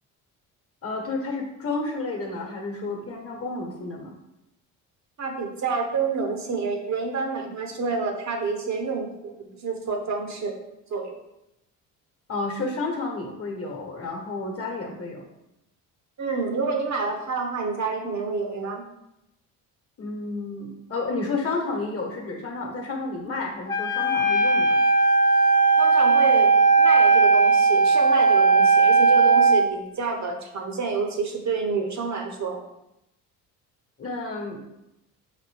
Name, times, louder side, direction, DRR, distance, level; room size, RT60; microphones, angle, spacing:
voice 1, 0.8-4.1 12.3-15.2 20.0-24.8 34.0-34.7, left 3 dB, 35° left, 2 dB, 1.2 m, -31 dB
voice 2, 5.2-10.5 10.9-11.2 16.2-18.9 25.8-32.6, right 4 dB, 45° right, 3 dB, 0.8 m, -28 dB
Wind instrument woodwind instrument, 23.7-29.7, right 4 dB, 10° left, 0.4 m, -18 dB
5.0 x 2.6 x 3.4 m, 0.87 s
supercardioid pair, 70°, 40 cm